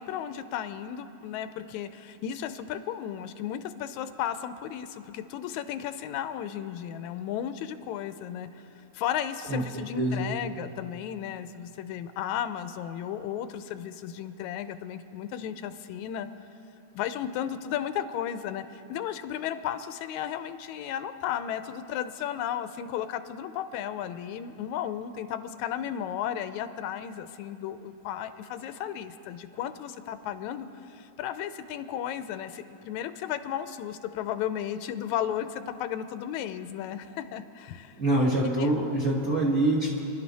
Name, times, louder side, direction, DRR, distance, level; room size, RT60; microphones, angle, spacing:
voice 1, 0.0-8.5 8.9-16.3 16.9-38.0 38.4-38.7, left 10 dB, 85° left, 11 dB, 2.0 m, -34 dB
voice 2, 9.9-10.3 38.0-40.0, right 1 dB, 30° right, -3 dB, 1.4 m, -25 dB
29.5 x 11.5 x 4.1 m, 2.8 s
omnidirectional pair, 3.3 m